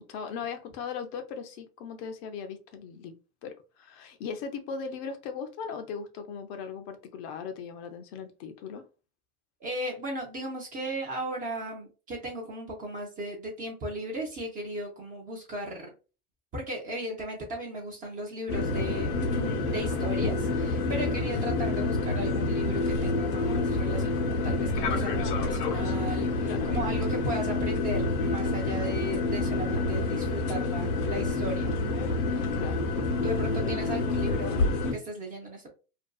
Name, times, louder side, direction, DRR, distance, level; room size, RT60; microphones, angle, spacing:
voice 1, 0.0-3.1 3.4-8.8 26.5-26.7 32.3-33.3 33.6-33.8, left 6 dB, 45° left, 7 dB, 0.4 m, -38 dB
voice 2, 9.6-15.9 16.5-31.8 33.2-35.7, right 1 dB, 20° right, 0 dB, 0.4 m, -36 dB
sound 1, 18.5-34.9, left 3 dB, 85° left, 0.7 m, -28 dB
2.5 x 2.2 x 2.2 m, 0.33 s
hypercardioid pair, 115°, 45 cm